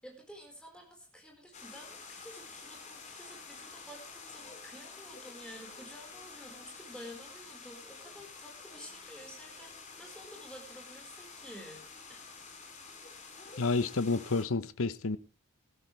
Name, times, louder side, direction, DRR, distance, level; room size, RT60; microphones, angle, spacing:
voice 1, 0.0-11.8 12.1-12.2, equal, 5° left, 4.6 m, -51 dB
sound 1, 1.5-14.4, left 4 dB, 30° left, 3.1 m, -49 dB
voice 2, 13.6-15.2, left 3 dB, 70° left, 0.8 m, -30 dB
17.5 x 13.0 x 3.3 m
head